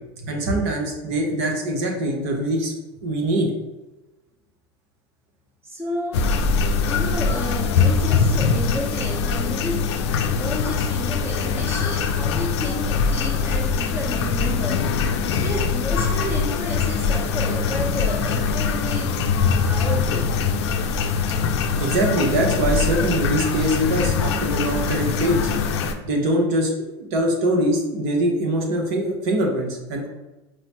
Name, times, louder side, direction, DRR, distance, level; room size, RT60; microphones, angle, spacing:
voice 1, 0.2-2.7 3.0-3.5 21.8-25.5 26.0-30.1, right 1 dB, 70° right, 0.9 m, -23 dB
voice 2, 5.6-6.5 6.8-14.9 15.3-19.2 19.7-20.4, equal, 15° right, 0.8 m, -31 dB
sound 1, 6.1-25.9, left 5 dB, 85° left, 0.4 m, -22 dB
4.7 x 2.1 x 2.9 m
supercardioid pair, 100°, 14 cm